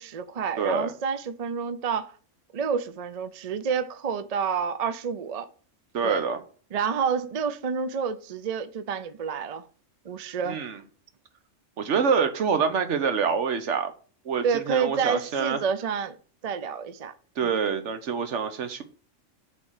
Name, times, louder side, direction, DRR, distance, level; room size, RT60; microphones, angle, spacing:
voice 1, 0.0-2.1 2.5-5.5 6.0-6.2 6.7-9.7 10.0-10.6 14.4-16.2 16.4-17.1 17.4-17.5, right 6 dB, 50° right, 0.5 m, -29 dB
voice 2, 0.6-0.9 5.9-6.4 10.5-10.8 11.8-13.9 14.2-15.6 17.4-18.8, right 6 dB, 65° right, 1.2 m, -26 dB
6.8 x 3.7 x 6.4 m
omnidirectional pair, 1.3 m